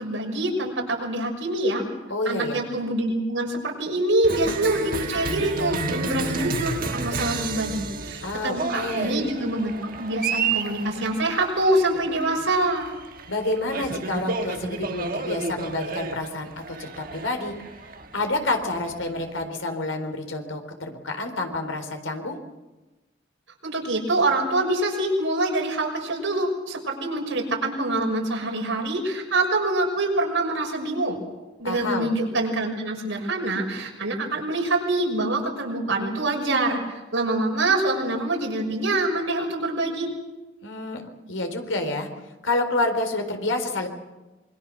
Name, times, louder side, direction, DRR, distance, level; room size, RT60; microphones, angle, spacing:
voice 1, 0.0-1.8 2.2-12.9 23.6-31.2 31.6-40.1, right 2 dB, 85° right, 0 dB, 6.3 m, -25 dB
voice 2, 2.1-2.6 8.2-9.2 13.3-17.5 18.1-22.4 31.6-32.1 40.6-41.0 41.3-42.1 42.4-43.9, left 2 dB, 90° left, 5 dB, 4.0 m, -28 dB
Cheering, 4.2-19.4, right 4 dB, 45° right, 1.6 m, -31 dB
26.5 x 23.0 x 6.4 m, 1.1 s
head